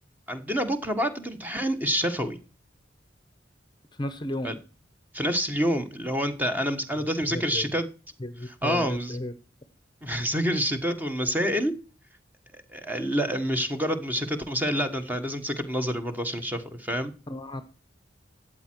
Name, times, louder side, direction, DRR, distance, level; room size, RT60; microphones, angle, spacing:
voice 1, 0.3-2.4 4.4-4.6 5.1-7.9 8.5-9.2 10.0-11.7 12.5-17.1, equal, 10° right, 8 dB, 1.4 m, -27 dB
voice 2, 3.9-4.5 7.3-7.7 8.2-9.3 17.3-17.6, left 1 dB, 25° left, 12 dB, 0.9 m, -34 dB
13.5 x 8.7 x 4.5 m, 0.36 s
head